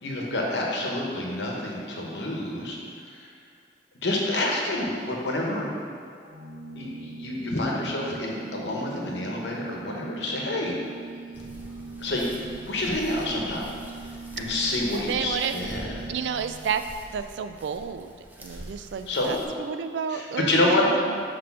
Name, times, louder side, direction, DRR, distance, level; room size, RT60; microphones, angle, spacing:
voice 1, 0.0-2.8 3.0-3.3 4.0-5.7 6.8-10.7 12.0-12.3 12.7-13.7 14.4-16.1 19.1-19.4 20.1-20.8, left 1 dB, 80° left, -2 dB, 1.0 m, -28 dB
Organ, 6.2-16.9, right 3 dB, 55° right, 0.6 m, -41 dB
sound 1, 11.3-19.4, equal, 10° right, 0.5 m, -44 dB
voice 2, 14.9-15.6 16.1-16.9 17.1-18.1 18.4-21.2, right 7 dB, 85° right, 9 dB, 0.3 m, -31 dB
6.0 x 3.2 x 5.7 m, 2.2 s
head